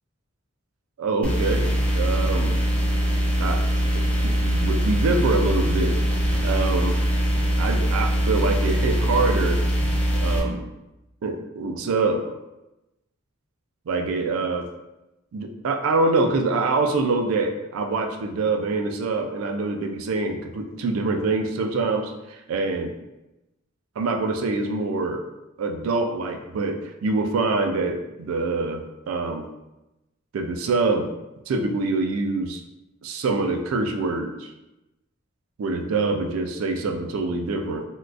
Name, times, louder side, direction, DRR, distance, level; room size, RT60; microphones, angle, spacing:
voice 1, 1.0-2.6 3.4-3.6 3.9-4.0 4.4-6.0 6.4-7.0 7.6-9.6 10.2-10.6 11.2-12.3 13.9-14.7 15.3-22.9 24.0-25.2 25.6-29.5 30.3-31.1 31.5-32.6 33.0-34.5 35.6-37.8, right 3 dB, 85° right, 5 dB, 0.4 m, -25 dB
sound 1, 1.2-10.4, right 1 dB, 5° left, 0.4 m, -22 dB
3.6 x 2.3 x 2.4 m, 0.96 s
head